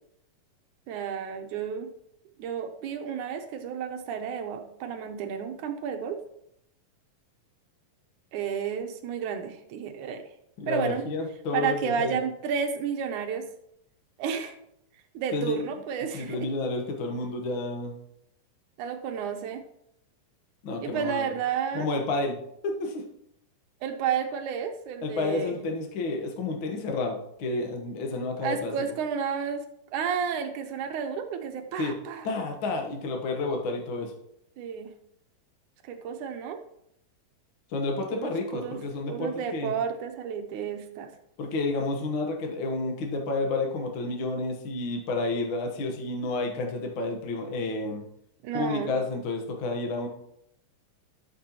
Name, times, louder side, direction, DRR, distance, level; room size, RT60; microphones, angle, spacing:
voice 1, 0.9-1.9 2.4-6.2 8.3-10.2 10.7-11.0 11.5-13.5 14.2-14.6 15.1-16.5 18.8-19.6 20.8-21.9 23.8-25.6 28.4-29.7 29.9-32.3 34.6-34.9 35.8-36.6 38.1-38.8 39.1-41.1 48.4-48.9, right 7 dB, 75° right, 5 dB, 2.1 m, -31 dB
voice 2, 10.6-12.2 15.3-15.6 16.1-17.9 20.6-21.3 21.7-22.4 22.6-23.0 25.0-28.7 31.8-31.9 32.2-34.1 37.7-39.7 41.4-48.0 48.5-50.1, left 3 dB, 55° left, 2 dB, 1.4 m, -30 dB
12.0 x 6.8 x 3.0 m, 0.75 s
omnidirectional pair, 3.9 m